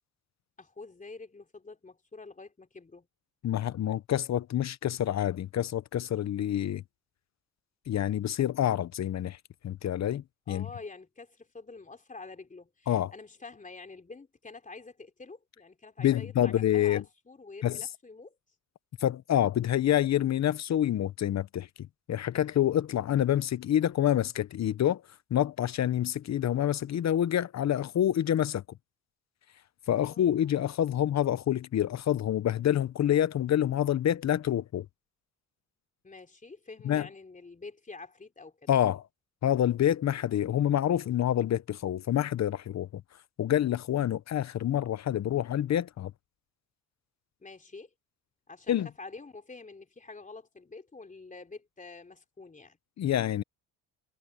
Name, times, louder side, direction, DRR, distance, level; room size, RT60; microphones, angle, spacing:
voice 1, 0.6-3.1 10.5-18.4 30.0-30.7 36.0-38.7 47.4-47.9 48.5-52.8, left 3 dB, 25° left, 3.5 m, -47 dB
voice 2, 3.4-6.8 7.9-9.4 9.6-10.7 12.9-13.1 16.0-17.0 17.6-17.8 19.0-21.7 22.1-25.0 25.3-28.6 29.9-34.9 36.8-37.1 38.7-39.0 39.4-43.0 43.4-46.1 48.7-48.9 53.0-53.4, left 11 dB, 50° left, 0.9 m, -27 dB
cardioid pair, 90°, 34 cm